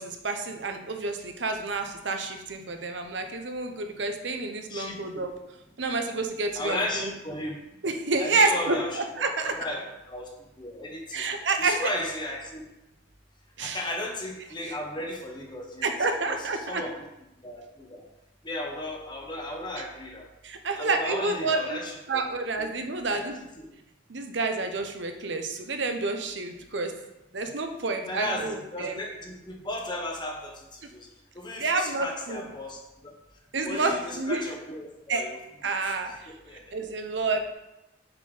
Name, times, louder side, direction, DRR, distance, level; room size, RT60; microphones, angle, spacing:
voice 1, 0.0-5.3 5.8-7.1 7.8-8.8 9.2-9.6 11.1-11.9 13.6-13.8 14.7-14.8 15.8-16.8 20.4-21.8 22.1-23.4 24.1-26.9 27.3-29.0 31.6-32.4 33.5-34.4 35.1-35.2 35.6-36.3 36.7-37.5, right 3 dB, 70° right, 6 dB, 0.8 m, -29 dB
voice 2, 4.7-5.2 6.5-7.5 8.2-9.8 10.1-10.3 10.6-11.2 11.6-12.6 13.6-15.9 16.3-16.9 17.4-18.0 18.4-20.3 20.7-22.2 22.6-22.7 23.1-23.2 23.6-23.7 28.1-31.1 31.3-33.1 33.6-35.4 35.6-35.7 36.1-36.2 36.4-36.9, left 1 dB, 25° left, 0 dB, 1.2 m, -35 dB
7.3 x 4.3 x 5.0 m, 0.94 s
head